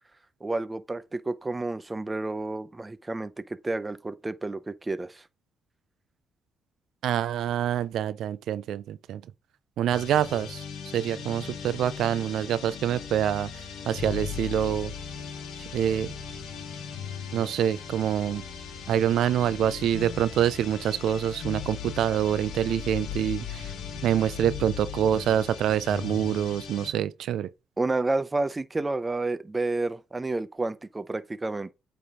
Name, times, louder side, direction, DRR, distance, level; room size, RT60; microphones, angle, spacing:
voice 1, 0.4-5.2 27.8-31.7, right 2 dB, 20° right, 0.5 m, -30 dB
voice 2, 7.0-9.2 9.8-10.6 10.9-13.5 13.9-14.9 15.7-16.1 17.3-18.4 18.9-23.7 24.0-27.5, right 10 dB, 75° right, 0.3 m, -26 dB
sound 1, 9.9-26.9, left 7 dB, 80° left, 1.2 m, -38 dB
8.5 x 3.4 x 3.6 m
cardioid pair, 90°, 0 cm